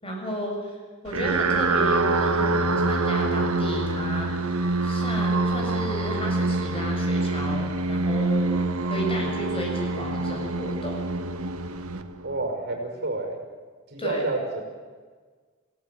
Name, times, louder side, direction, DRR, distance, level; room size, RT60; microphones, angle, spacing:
voice 1, 0.0-0.8 1.0-8.6 8.9-11.0 14.0-14.2, equal, 25° left, 0 dB, 7.2 m, -33 dB
sound 1, 1.1-12.5, right 2 dB, 90° right, 1.7 m, -25 dB
voice 2, 12.2-13.4 13.9-14.6, right 2 dB, 50° right, 3 dB, 5.6 m, -29 dB
27.0 x 17.5 x 9.1 m, 1.5 s
head